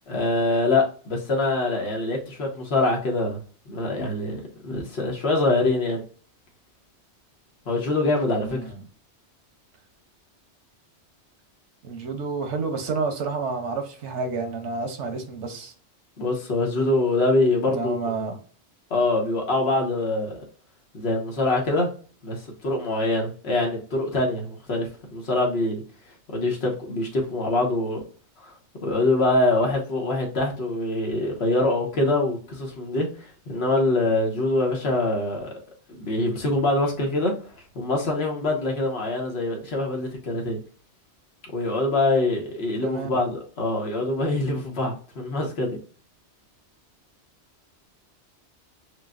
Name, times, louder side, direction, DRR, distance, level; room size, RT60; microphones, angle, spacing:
voice 1, 0.1-6.0 7.7-8.6 16.2-17.9 18.9-20.4 20.9-21.9 22.2-25.8 26.3-28.0 28.4-28.5 28.8-35.5 35.9-37.3 37.7-40.6 41.5-45.8, left 2 dB, 65° left, 1.4 m, -24 dB
voice 2, 8.3-8.8 11.8-15.7 17.7-18.4 42.8-43.1, right 4 dB, 85° right, 1.2 m, -30 dB
6.6 x 2.3 x 2.5 m
omnidirectional pair, 1.2 m